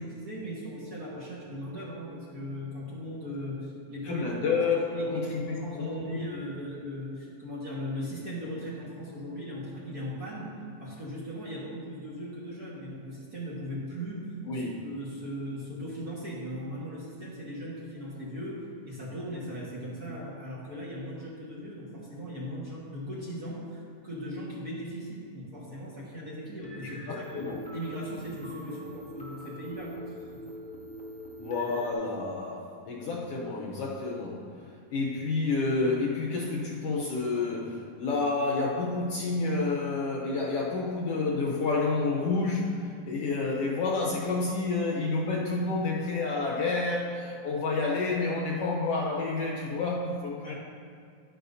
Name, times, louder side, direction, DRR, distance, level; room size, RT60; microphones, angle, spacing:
voice 1, 0.0-4.2 4.9-10.5 10.8-27.5 27.7-29.9 30.3-30.4 50.4-50.5, equal, 40° right, -7 dB, 1.7 m, -38 dB
voice 2, 4.0-5.4 5.7-6.2 14.5-14.8 27.1-27.6 31.4-34.6 34.9-50.5, left 3 dB, 70° left, -3 dB, 1.6 m, -29 dB
sound 1, 26.6-31.9, equal, 5° left, 0.8 m, -44 dB
11.5 x 10.5 x 2.7 m, 2.2 s
omnidirectional pair, 3.3 m